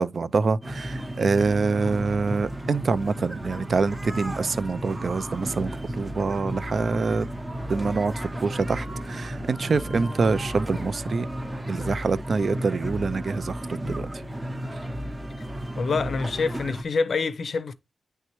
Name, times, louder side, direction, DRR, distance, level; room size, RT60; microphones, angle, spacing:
voice 1, 0.0-5.7 6.0-7.3 7.7-11.3 11.7-14.1, right 4 dB, 50° right, 0.4 m, -25 dB
sound 1, 0.6-16.8, right 1 dB, 15° right, 0.8 m, -33 dB
voice 2, 15.8-17.7, left 4 dB, 55° left, 0.5 m, -26 dB
9.7 x 3.3 x 3.0 m
wide cardioid pair, 135°, 0 cm